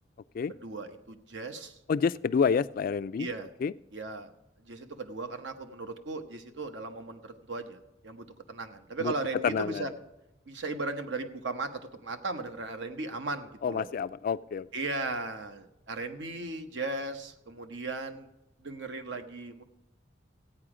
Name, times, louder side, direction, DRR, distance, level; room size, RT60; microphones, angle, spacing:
voice 1, 0.5-1.8 3.2-3.5 3.9-4.3 4.6-9.9 10.5-13.9 14.7-18.3 18.6-19.6, right 3 dB, 75° right, 7 dB, 1.0 m, -37 dB
voice 2, 1.9-3.3 3.6-3.7 9.0-9.1 9.4-9.9 13.6-14.7, left 6 dB, 50° left, 16 dB, 0.3 m, -28 dB
15.0 x 8.9 x 4.9 m, 0.93 s
head